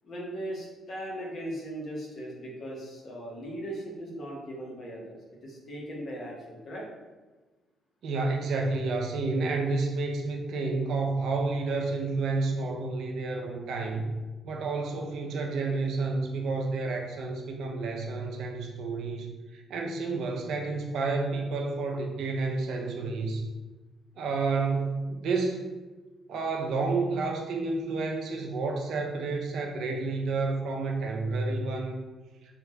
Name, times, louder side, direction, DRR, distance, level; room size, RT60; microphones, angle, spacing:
voice 1, 0.0-6.9, right 1 dB, 55° left, -3 dB, 1.0 m, -38 dB
voice 2, 8.0-14.1 14.4-19.3 19.5-23.4 24.2-25.7 26.3-32.0, right 3 dB, 75° right, 2 dB, 0.5 m, -30 dB
3.4 x 2.3 x 3.1 m, 1.2 s
cardioid pair, 90°, 0 cm